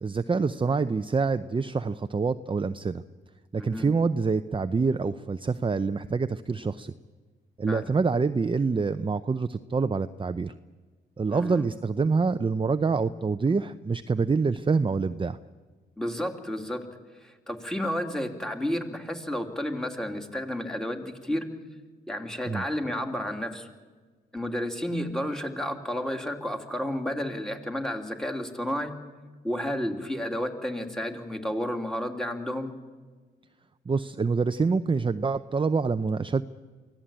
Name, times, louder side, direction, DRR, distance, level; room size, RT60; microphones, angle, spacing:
voice 1, 0.0-3.0 3.5-6.9 7.6-10.5 11.2-15.4 22.5-22.6 33.9-36.4, right 4 dB, 25° right, 11 dB, 0.7 m, -26 dB
voice 2, 3.6-3.9 7.7-7.9 11.3-11.6 16.0-16.9 17.2-21.5 22.1-23.7 24.3-29.0 29.4-32.7, equal, ahead, 4 dB, 3.0 m, -31 dB
24.0 x 16.5 x 8.9 m, 1.4 s
cardioid pair, 65°, 20 cm